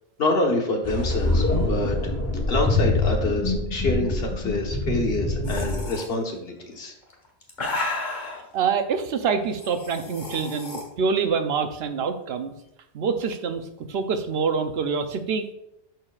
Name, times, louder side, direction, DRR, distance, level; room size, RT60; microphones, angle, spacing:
voice 1, 0.2-2.1 2.5-6.9, left 2 dB, 55° left, 1 dB, 1.5 m, -26 dB
sound 1, 0.8-5.8, left 2 dB, 15° left, 1.1 m, -25 dB
sound 2, 5.5-6.1 7.0-8.4 9.5-10.8, left 2 dB, 40° left, 1.4 m, -32 dB
voice 2, 8.5-12.5 12.9-15.5, right 5 dB, 60° right, 8 dB, 0.9 m, -26 dB
12.5 x 4.5 x 2.4 m, 0.83 s
omnidirectional pair, 1.2 m